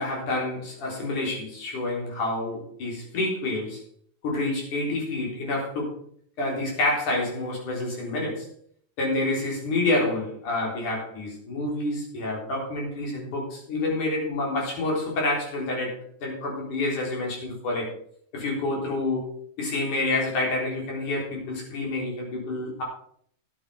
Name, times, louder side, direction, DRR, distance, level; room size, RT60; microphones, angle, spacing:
voice 1, 0.0-3.8 4.2-5.9 6.4-8.5 9.0-17.9 18.3-22.8, left 2 dB, 80° left, -2 dB, 5.5 m, -28 dB
13.0 x 9.9 x 4.9 m, 0.62 s
omnidirectional pair, 3.5 m